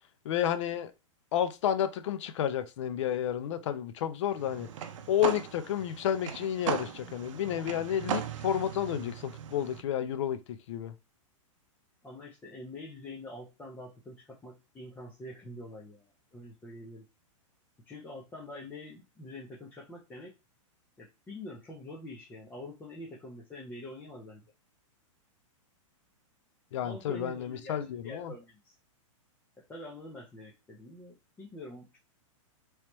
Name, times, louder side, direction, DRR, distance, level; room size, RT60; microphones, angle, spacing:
voice 1, 0.2-0.9 1.3-4.7 5.1-10.9 26.7-28.3, left 10 dB, 65° left, 0.6 m, -31 dB
sound 1, 4.3-9.8, right 8 dB, 70° right, 0.6 m, -38 dB
voice 2, 12.0-16.0 16.3-17.1 17.9-20.3 21.0-24.4 26.8-28.7 29.7-32.0, left 1 dB, 10° left, 0.5 m, -45 dB
3.2 x 3.1 x 3.0 m
hypercardioid pair, 150°, 17 cm